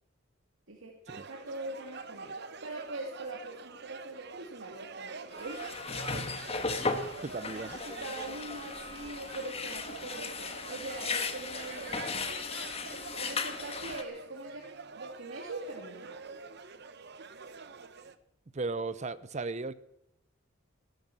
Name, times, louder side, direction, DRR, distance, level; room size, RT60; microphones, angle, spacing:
voice 1, 0.7-2.3 2.6-5.7 7.8-12.0 13.1-14.7 14.9-16.3, right 2 dB, 75° right, 2 dB, 2.1 m, -42 dB
sound 1, 1.1-18.2, right 4 dB, 55° right, 0.9 m, -46 dB
sound 2, 5.3-14.0, left 4 dB, 30° left, 1.4 m, -36 dB
voice 2, 7.2-7.8 18.5-19.7, right 3 dB, 35° right, 17 dB, 0.5 m, -36 dB
16.0 x 11.5 x 7.3 m, 0.83 s
head